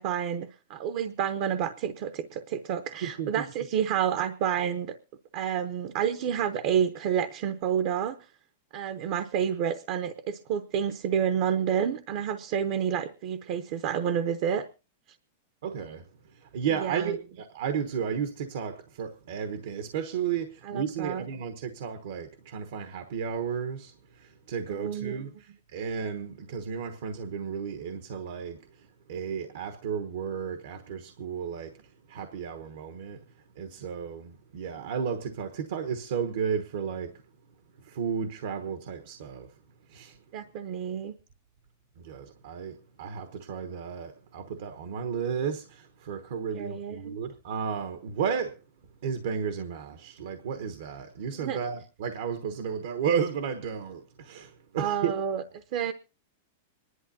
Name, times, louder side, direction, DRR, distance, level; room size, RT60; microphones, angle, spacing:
voice 1, 0.0-5.0 5.3-8.2 8.7-14.6 16.7-17.1 20.6-21.2 24.7-25.2 40.3-41.1 46.5-47.2 51.3-51.6 54.8-55.4 55.7-55.9, right 8 dB, 55° right, 0.8 m, -29 dB
voice 2, 3.0-3.5 15.6-16.0 16.3-33.2 33.6-37.2 37.8-39.5 39.9-40.2 42.0-48.6 49.0-55.2, right 7 dB, 75° right, 1.1 m, -33 dB
25.5 x 11.0 x 2.7 m
hypercardioid pair, 130°, 0 cm